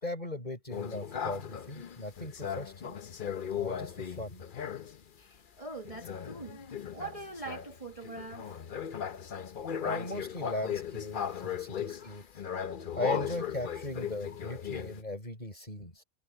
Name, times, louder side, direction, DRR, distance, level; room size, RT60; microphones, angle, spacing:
voice 1, 0.0-3.0 3.5-4.4 9.8-12.2 12.9-16.0, left 1 dB, 30° left, 5.8 m, -38 dB
sound 1, 0.7-5.0 5.9-15.0, left 8 dB, 45° left, 0.8 m, -37 dB
voice 2, 5.2-6.6 6.9-8.7 9.7-9.9 12.0-12.3 12.9-13.3 13.7-14.4, right 3 dB, 25° right, 1.9 m, -45 dB
omnidirectional pair, 1.6 m